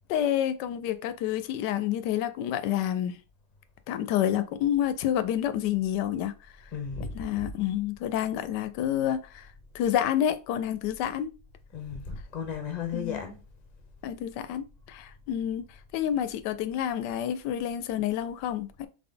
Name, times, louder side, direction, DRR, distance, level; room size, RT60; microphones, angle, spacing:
voice 1, 0.1-3.2 3.9-6.3 7.1-9.5 9.7-11.3 12.9-13.2 14.0-15.7 15.9-18.9, left 10 dB, 85° left, 1.2 m, -28 dB
voice 2, 6.7-7.1 11.7-13.4, left 6 dB, 30° left, 0.8 m, -34 dB
4.0 x 3.4 x 3.8 m
omnidirectional pair, 1.8 m